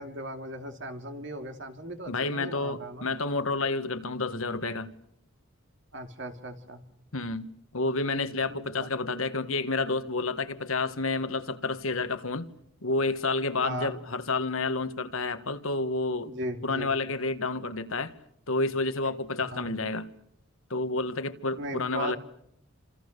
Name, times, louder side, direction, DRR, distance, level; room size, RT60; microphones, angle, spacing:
voice 1, 0.0-3.1 5.9-6.8 8.5-8.7 13.6-13.9 16.3-16.9 19.5-19.7 21.6-22.2, right 1 dB, 55° right, 2.8 m, -37 dB
voice 2, 2.1-4.9 7.1-12.5 12.8-16.3 16.6-18.1 18.5-20.1 20.7-22.2, left 3 dB, 70° left, 1.6 m, -30 dB
29.0 x 27.5 x 6.8 m
head